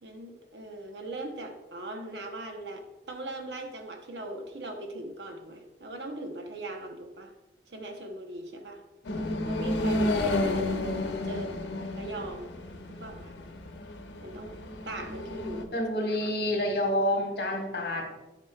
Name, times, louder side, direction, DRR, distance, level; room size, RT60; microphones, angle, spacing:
voice 1, 0.0-7.3 7.7-8.8 9.4-10.8 11.2-11.6 11.9-12.5 12.9-13.4 14.2-15.7 16.0-16.3, right 1 dB, 75° right, 4 dB, 1.0 m, -40 dB
sound 1, 9.0-15.6, left 2 dB, 85° left, 0.8 m, -31 dB
voice 2, 15.7-18.2, left 1 dB, 65° left, 2 dB, 1.3 m, -28 dB
10.5 x 5.0 x 2.3 m, 1.1 s
head